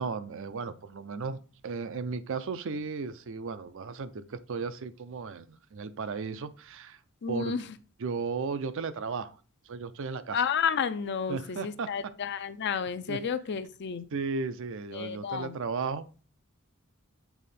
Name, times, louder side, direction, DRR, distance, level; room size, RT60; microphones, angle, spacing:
voice 1, 0.0-7.0 7.3-7.5 8.0-9.4 9.7-10.4 11.3-11.9 13.1-13.2 14.1-16.2, right 4 dB, 65° right, 12 dB, 0.5 m, -35 dB
voice 2, 7.2-7.7 10.3-14.0 14.9-15.6, left 6 dB, 55° left, 12 dB, 0.5 m, -31 dB
7.0 x 3.6 x 4.2 m, 0.36 s
head